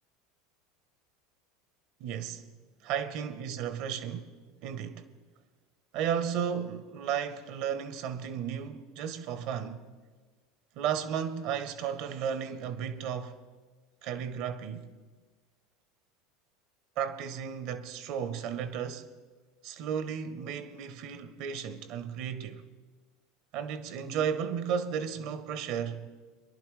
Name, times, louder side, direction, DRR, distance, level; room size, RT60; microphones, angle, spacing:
voice 1, 2.0-2.4 2.8-4.3 4.6-5.1 5.9-9.9 10.8-13.4 14.0-14.9 17.0-19.1 19.6-22.7 23.5-26.1, right 8 dB, 60° right, 0.9 m, -34 dB
22.5 x 11.0 x 3.2 m
hypercardioid pair, 85°, 0 cm